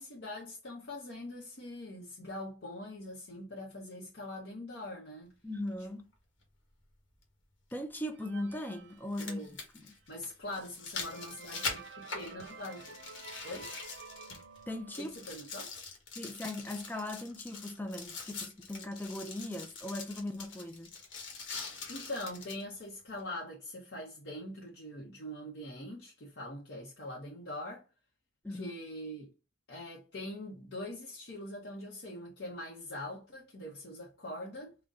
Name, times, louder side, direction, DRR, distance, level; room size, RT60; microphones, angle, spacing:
voice 1, 0.0-5.3 9.2-9.6 10.1-13.0 13.4-13.7 15.0-15.8 21.9-27.9 28.5-29.3 29.7-34.8, left 1 dB, 65° left, 0.8 m, -43 dB
voice 2, 5.4-6.1 7.7-9.5 9.7-9.9 14.7-15.2 16.2-20.9 28.4-28.7, left 1 dB, 10° left, 0.5 m, -39 dB
sound 1, 5.7-5.8 7.7-7.8 8.9-14.6 14.9-22.6 23.2-23.3, left 4 dB, 85° left, 1.3 m, -43 dB
sound 2, 8.1-9.8 10.3-10.4 10.8-15.3, right 5 dB, 65° right, 0.5 m, -51 dB
4.0 x 2.2 x 3.6 m
head